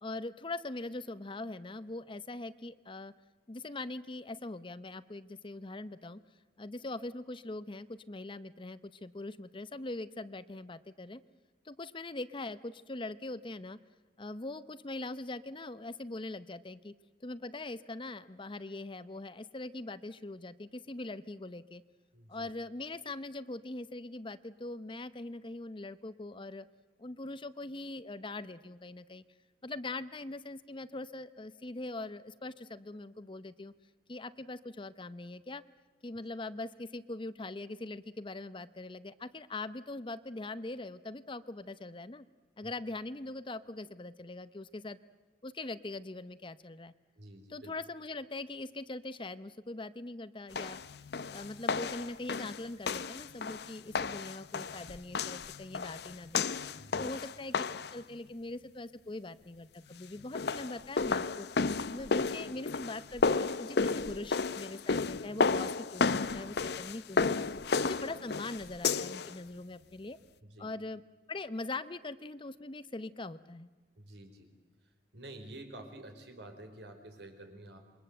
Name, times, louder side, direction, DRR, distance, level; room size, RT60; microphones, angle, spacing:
voice 1, 0.0-3.1 3.5-6.2 6.6-11.2 11.6-13.8 14.2-16.9 17.2-21.8 22.3-26.6 27.0-29.2 29.6-33.7 34.1-35.6 36.0-42.3 42.6-45.0 45.4-46.9 47.5-50.8 51.3-56.5 57.0-57.5 57.9-61.5 61.9-67.3 67.8-70.2 70.6-71.0 71.3-73.7, left 2 dB, 30° left, 14 dB, 0.7 m, -42 dB
voice 2, 22.1-22.5 42.6-42.7 47.1-47.7 56.8-57.2 70.4-70.7 74.0-74.5 75.1-77.8, right 1 dB, 75° right, 5 dB, 4.5 m, -49 dB
sound 1, 50.5-58.0 60.2-69.3, left 4 dB, 65° left, 0.7 m, -32 dB
27.5 x 23.0 x 7.9 m, 1.3 s
head